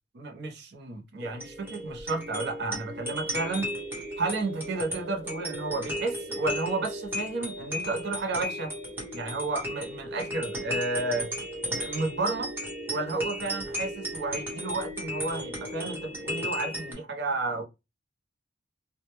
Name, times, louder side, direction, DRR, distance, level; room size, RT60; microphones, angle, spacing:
voice 1, 0.1-3.7 4.2-8.7 9.1-11.3 11.7-12.5 12.9-17.6, right 3 dB, 60° right, 0.6 m, -32 dB
sound 1, 1.2-16.9, equal, 10° right, 0.8 m, -35 dB
2.1 x 2.0 x 2.9 m
head